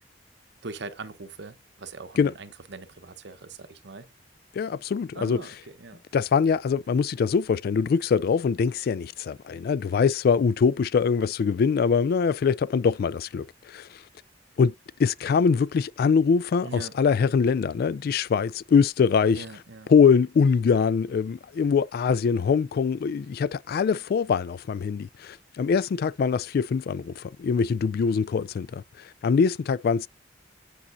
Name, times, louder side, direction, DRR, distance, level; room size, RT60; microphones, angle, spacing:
voice 1, 0.6-4.1 5.1-6.0 16.6-17.0 19.3-19.9, right 3 dB, 65° right, 0.9 m, -41 dB
voice 2, 4.5-5.4 6.1-14.0 14.6-14.7 15.0-19.4 19.9-30.1, left 6 dB, 55° left, 0.3 m, -23 dB
8.7 x 5.5 x 2.6 m
head